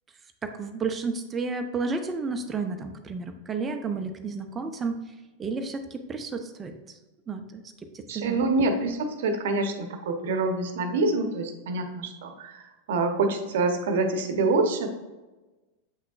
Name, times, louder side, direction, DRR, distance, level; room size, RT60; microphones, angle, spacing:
voice 1, 0.4-5.0 5.4-7.0 7.3-7.6 7.9-8.4, right 4 dB, 20° right, 6 dB, 0.7 m, -32 dB
voice 2, 8.1-14.9, right 3 dB, 55° right, 6 dB, 1.0 m, -26 dB
8.2 x 5.8 x 2.4 m, 1.2 s
figure-of-eight pair, 90°, 0 cm